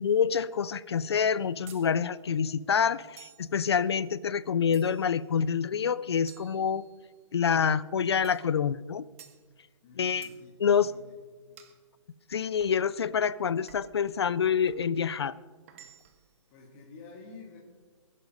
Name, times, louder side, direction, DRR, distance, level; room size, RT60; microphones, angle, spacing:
voice 1, 0.0-6.9 7.3-9.0 10.0-10.3 10.6-10.9 12.3-15.4, left 7 dB, 55° left, 18 dB, 0.5 m, -27 dB
sound 1, 1.7-1.9 3.2-3.5 4.7-5.2 6.3-7.2 8.2-8.5 9.2-9.4 10.2-10.4 11.6-11.8 12.6-12.8 13.7-14.0 14.7-14.9 15.7-16.3, right 10 dB, 25° right, 1.3 m, -53 dB
voice 2, 9.8-11.0 11.5-11.6 16.0-17.6, left 4 dB, 20° left, -2 dB, 2.0 m, -50 dB
22.5 x 11.0 x 5.3 m, 1.4 s
hypercardioid pair, 170°, 16 cm